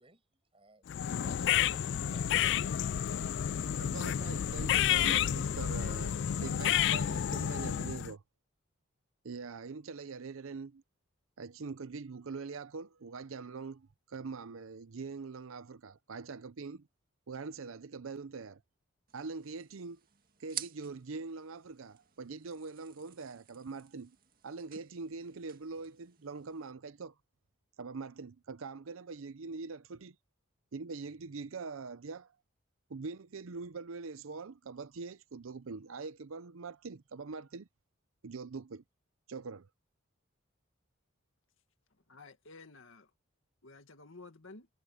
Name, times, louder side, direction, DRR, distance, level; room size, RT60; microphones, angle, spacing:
voice 1, 0.0-3.7, right 2 dB, 25° right, 7.4 m, -61 dB
sound 1, 0.9-8.1, left 10 dB, 55° left, 0.3 m, -30 dB
voice 2, 3.8-8.2 9.2-10.8 11.4-16.9 17.3-18.6 19.1-20.0 20.4-24.1 24.4-27.1 27.8-30.2 30.7-32.3 32.9-37.7 38.2-38.8 39.3-39.7, right 4 dB, 80° right, 0.6 m, -43 dB
sound 2, 19.1-26.7, right 11 dB, 45° right, 2.1 m, -50 dB
voice 3, 42.1-43.1 43.6-44.7, left 3 dB, 75° left, 2.0 m, -52 dB
head